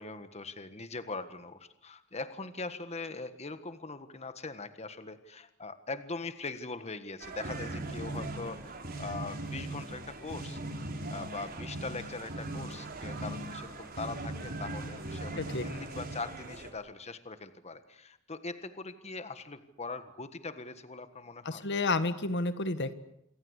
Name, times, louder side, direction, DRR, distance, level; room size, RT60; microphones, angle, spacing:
voice 1, 0.0-10.6 11.1-21.6, left 3 dB, 30° left, 10 dB, 1.5 m, -41 dB
sound 1, 7.2-16.7, right 2 dB, 45° right, 4.8 m, -39 dB
voice 2, 15.4-15.7 21.4-22.9, left 3 dB, 55° left, 11 dB, 1.6 m, -30 dB
28.0 x 24.5 x 8.2 m, 0.77 s
head